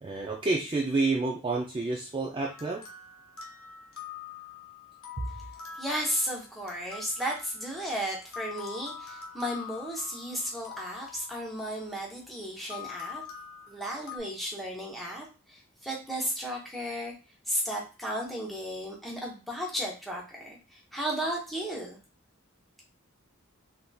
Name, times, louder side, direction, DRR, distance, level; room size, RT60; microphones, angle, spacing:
voice 1, 0.0-2.8, right 3 dB, 25° right, -1 dB, 0.3 m, -29 dB
sound 1, 2.4-12.1 12.7-14.2, left 7 dB, 70° left, 0.8 m, -45 dB
voice 2, 5.7-13.2 13.7-17.1 17.5-22.0, equal, ahead, -3 dB, 0.8 m, -34 dB
3.6 x 2.6 x 2.2 m, 0.32 s
head